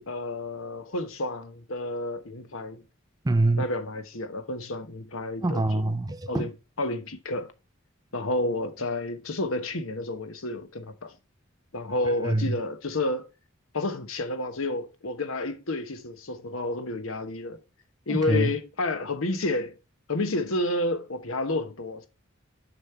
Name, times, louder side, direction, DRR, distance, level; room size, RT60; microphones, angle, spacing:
voice 1, 0.0-2.8 3.6-5.9 6.3-6.5 6.8-7.5 8.1-11.1 11.7-13.3 13.7-17.6 18.1-19.8 20.1-22.1, left 2 dB, 75° left, 1.1 m, -30 dB
voice 2, 3.2-3.6 5.4-6.5 12.2-12.6 18.1-18.5, right 2 dB, 20° right, 0.5 m, -25 dB
7.0 x 5.4 x 4.3 m
head